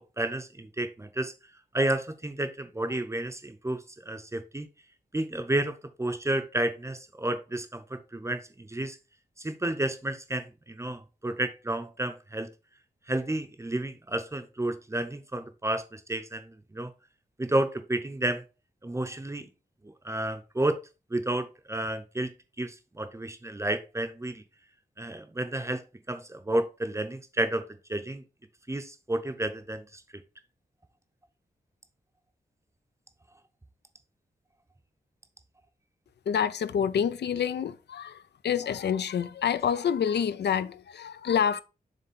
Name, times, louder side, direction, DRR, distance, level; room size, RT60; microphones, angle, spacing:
voice 1, 0.0-1.3 1.7-4.7 5.1-9.0 9.4-12.5 13.1-16.9 17.4-18.4 18.8-19.5 19.8-20.8 21.1-22.3 22.6-24.4 25.0-28.2 28.7-30.0, right 1 dB, 15° right, 0.6 m, -31 dB
voice 2, 36.3-41.6, left 8 dB, 80° left, 0.5 m, -27 dB
7.3 x 3.3 x 4.1 m
wide cardioid pair, 145°, 17 cm